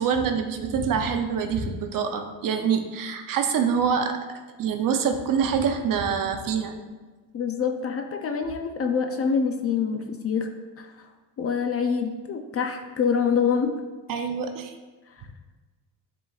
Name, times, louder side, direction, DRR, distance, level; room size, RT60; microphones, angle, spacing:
voice 1, 0.0-4.2 4.6-6.8 14.1-14.7, right 6 dB, 50° right, 6 dB, 0.7 m, -25 dB
voice 2, 7.3-10.5 10.8-11.1 11.4-13.7, left 6 dB, 35° left, 5 dB, 0.5 m, -26 dB
9.8 x 4.0 x 2.4 m, 1.3 s
cardioid pair, 110°, 44 cm